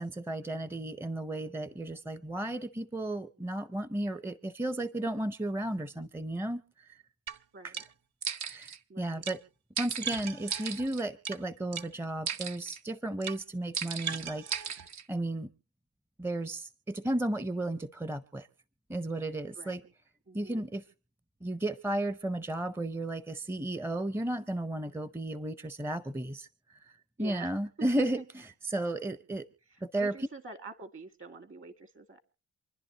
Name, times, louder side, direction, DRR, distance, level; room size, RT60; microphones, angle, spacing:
voice 1, 0.0-7.0 7.6-7.7 8.5-9.4 9.8-14.8 15.1-15.5 16.2-18.5 18.9-19.8 20.3-20.9 21.4-29.5 29.8-30.1, right 1 dB, 10° right, 15 dB, 0.6 m, -34 dB
sound 1, 7.3-7.4 7.7-7.9 8.2-8.8 9.2-9.4 9.8-11.4 11.7-11.9 12.3-12.8 13.2-13.4 13.7-15.0, right 7 dB, 65° right, 0.8 m, -36 dB
voice 2, 8.9-9.2 19.6-19.9 20.3-20.6 27.2-27.5 27.8-28.2 29.7-32.2, right 3 dB, 45° right, 10 dB, 1.9 m, -46 dB
27.5 x 10.5 x 2.8 m, 0.35 s
cardioid pair, 90°, 30 cm